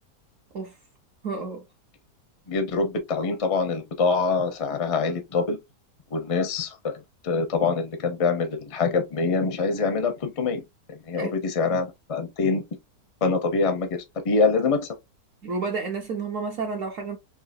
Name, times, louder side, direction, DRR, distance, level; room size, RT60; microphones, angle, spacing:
voice 1, 1.2-1.6 11.2-11.3 11.6-11.8 15.4-17.2, right 4 dB, 60° right, 1.0 m, -31 dB
voice 2, 2.5-5.6 6.1-10.6 10.9-12.6 13.2-14.9, left 4 dB, 45° left, 0.4 m, -25 dB
3.7 x 2.8 x 2.6 m
omnidirectional pair, 1.8 m